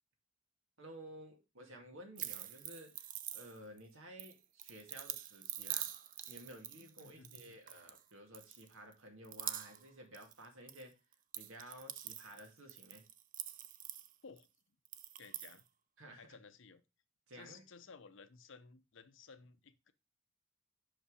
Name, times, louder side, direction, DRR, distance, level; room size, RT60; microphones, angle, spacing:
voice 1, 0.8-3.0 3.3-5.9 6.3-10.9 11.4-13.0 16.0-16.3 17.3-17.6, right 1 dB, 70° right, 2.2 m, -54 dB
sound 1, 2.2-3.8 4.2-8.0 8.3-8.9 9.2-9.9 10.1-10.8 11.1-14.4 14.9-15.6, right 11 dB, 40° right, 0.5 m, -45 dB
voice 2, 7.0-7.6 14.2-14.5 15.2-15.6 16.2-16.8 17.3-19.9, left 5 dB, 65° left, 0.7 m, -56 dB
6.1 x 5.3 x 4.9 m
head